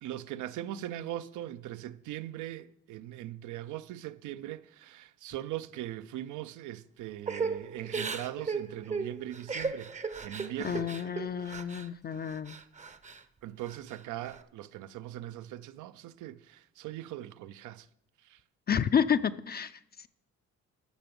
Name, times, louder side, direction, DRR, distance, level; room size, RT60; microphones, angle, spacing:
voice 1, 0.0-9.9 10.2-10.9 13.4-17.9 18.3-18.4, right 13 dB, 85° right, 0.5 m, -40 dB
Crying sobbing / Breathing, 7.3-11.9 12.2-13.2 13.6-14.4, right 4 dB, 25° right, 0.6 m, -36 dB
voice 2, 10.6-12.6 18.7-20.1, left 8 dB, 35° left, 0.4 m, -30 dB
13.5 x 5.9 x 5.3 m
cardioid pair, 90°, 30 cm